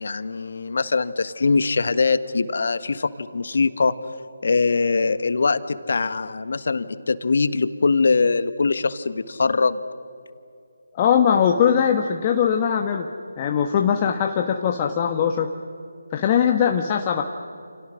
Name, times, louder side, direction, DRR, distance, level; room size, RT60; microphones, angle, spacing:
voice 1, 0.0-3.9 4.4-9.8, left 4 dB, 55° left, 13 dB, 1.4 m, -22 dB
voice 2, 11.0-13.1 13.4-15.5 16.1-17.2, left 8 dB, 25° left, 3 dB, 1.2 m, -20 dB
29.5 x 29.0 x 6.4 m, 2.5 s
figure-of-eight pair, 155°, 0 cm